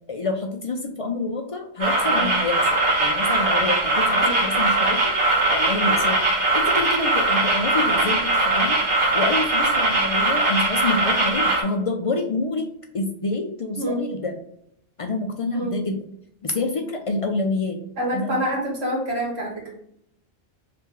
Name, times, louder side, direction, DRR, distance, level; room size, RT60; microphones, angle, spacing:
voice 1, 0.1-5.1 5.5-6.2 6.5-8.8 9.1-12.7 12.9-14.4 15.0-16.0 16.4-17.8 18.1-18.4, left 3 dB, 50° left, 4 dB, 0.4 m, -27 dB
sound 1, 1.8-11.6, right 2 dB, 55° right, 1.2 m, -21 dB
voice 2, 4.2-4.6 13.8-14.0 15.5-15.8 18.0-19.7, equal, 85° right, -4 dB, 1.9 m, -27 dB
3.3 x 2.8 x 3.7 m, 0.72 s
omnidirectional pair, 1.1 m